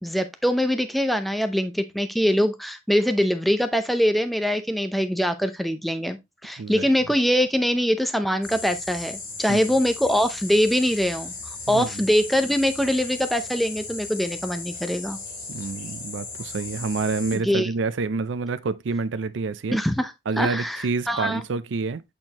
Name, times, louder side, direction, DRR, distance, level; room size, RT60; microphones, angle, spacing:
voice 1, 0.0-11.3 11.7-15.2 17.3-17.7 19.7-21.4, equal, ahead, 0.6 m, -23 dB
sound 1, 8.4-17.4, left 3 dB, 50° left, 2.2 m, -37 dB
voice 2, 11.7-12.1 15.5-19.8 20.3-22.0, right 4 dB, 85° right, 0.5 m, -28 dB
7.8 x 4.4 x 2.9 m
head